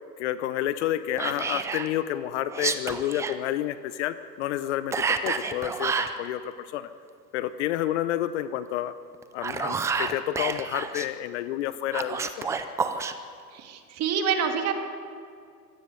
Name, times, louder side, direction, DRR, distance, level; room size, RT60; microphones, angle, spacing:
voice 1, 0.2-6.9 7.3-8.9 9.3-12.5, left 12 dB, 45° left, 13 dB, 0.9 m, -30 dB
Whispering, 1.2-1.9 2.5-3.4 4.9-6.2 9.2-11.1 11.9-13.1, right 5 dB, 5° right, 0.4 m, -29 dB
voice 2, 13.5-14.7, right 7 dB, 30° right, 4 dB, 2.6 m, -27 dB
25.5 x 16.5 x 7.1 m, 2.3 s
hypercardioid pair, 115°, 49 cm